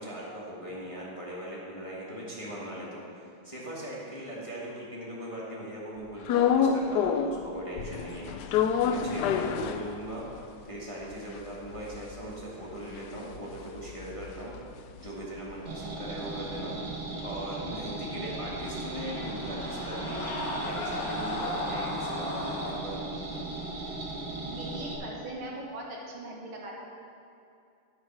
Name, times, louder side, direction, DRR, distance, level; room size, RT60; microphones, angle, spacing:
voice 1, 0.0-16.8 17.2-23.0, right 1 dB, 15° left, -6 dB, 1.6 m, -40 dB
sound 1, 6.3-7.5 7.8-10.4 10.7-10.8 11.0-15.5 15.9-19.9, left 7 dB, 75° left, 0.9 m, -30 dB
sound 2, 15.7-24.9, right 2 dB, 55° right, 2.1 m, -37 dB
sound 3, 18.3-22.8, left 2 dB, 50° left, 1.4 m, -36 dB
voice 2, 24.5-26.7, right 1 dB, 75° right, -2 dB, 2.4 m, -40 dB
10.5 x 7.7 x 5.9 m, 2.5 s
omnidirectional pair, 2.3 m